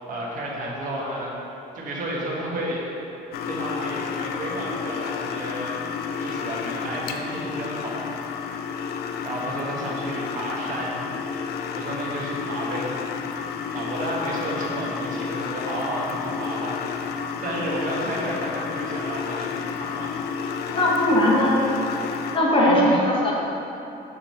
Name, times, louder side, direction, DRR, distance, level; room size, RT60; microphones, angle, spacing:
voice 1, 0.0-1.3 1.7-2.8 3.4-5.8 6.2-8.6 9.2-11.1 11.7-13.0 13.7-17.1 17.4-20.1 22.7-23.0, right 1 dB, 55° right, -5 dB, 1.4 m, -32 dB
sound 1, 3.3-22.4, left 6 dB, 70° left, 0.4 m, -31 dB
voice 2, 20.7-21.6 22.3-23.3, left 1 dB, 30° left, -4 dB, 1.1 m, -19 dB
6.2 x 3.1 x 5.5 m, 3.0 s
cardioid pair, 110°, 17 cm